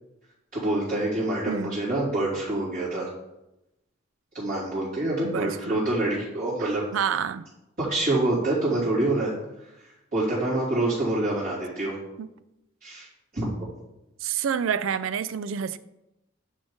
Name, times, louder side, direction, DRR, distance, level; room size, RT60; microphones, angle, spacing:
voice 1, 0.5-3.1 4.3-6.8 7.8-9.3 9.6-9.7 10.1-12.0 12.8-13.1 13.3-13.4, right 2 dB, 50° right, -12 dB, 3.1 m, -26 dB
voice 2, 1.5-1.8 5.2-5.9 6.9-7.5 12.2-12.3 14.2-15.8, right 7 dB, 85° right, 16 dB, 0.4 m, -28 dB
9.6 x 3.9 x 5.0 m, 0.92 s
head